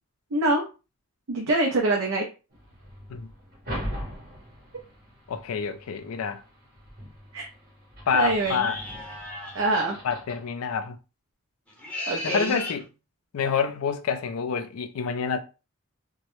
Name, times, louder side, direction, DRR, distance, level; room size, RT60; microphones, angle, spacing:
voice 1, 0.3-0.6 1.3-2.3 7.3-7.5 8.1-8.7 9.5-10.0 12.1-12.6, right 2 dB, 65° right, 0.5 m, -24 dB
sound 1, 2.5-10.5, equal, 50° right, 1.0 m, -41 dB
voice 2, 5.3-6.4 8.1-8.8 9.3-9.4 10.0-11.0 12.2-12.9 13.3-15.4, left 6 dB, 80° left, 0.4 m, -27 dB
sound 2, 8.4-9.6 11.7-12.8, left 2 dB, 5° left, 0.6 m, -36 dB
2.2 x 2.0 x 3.0 m
head